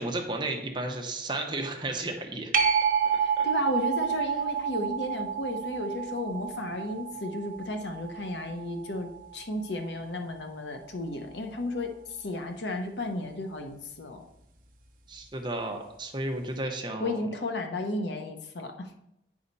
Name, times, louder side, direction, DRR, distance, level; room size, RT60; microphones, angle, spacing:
voice 1, 0.0-2.5 3.1-3.5 15.1-17.2, right 2 dB, 25° right, 3 dB, 1.0 m, -33 dB
sound 1, 2.5-9.7 15.2-15.3, right 7 dB, 50° right, 0.8 m, -29 dB
voice 2, 3.2-11.9 12.2-14.2 17.0-19.0, left 2 dB, 85° left, 5 dB, 1.0 m, -33 dB
9.5 x 5.0 x 4.1 m, 0.82 s
head